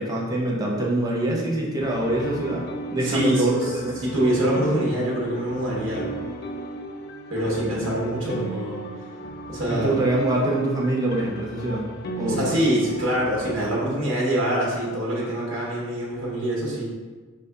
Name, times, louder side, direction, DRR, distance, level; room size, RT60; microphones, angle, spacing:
voice 1, 0.0-4.0 9.7-11.9 12.2-12.6, right 1 dB, 15° right, -3 dB, 0.7 m, -24 dB
sound 1, 1.8-13.6, right 2 dB, 45° left, 0.4 m, -35 dB
voice 2, 3.0-3.5 4.0-6.1 7.3-8.8 9.5-9.9 12.2-16.8, right 1 dB, 65° right, -5 dB, 1.1 m, -24 dB
5.4 x 2.5 x 3.4 m, 1.4 s
head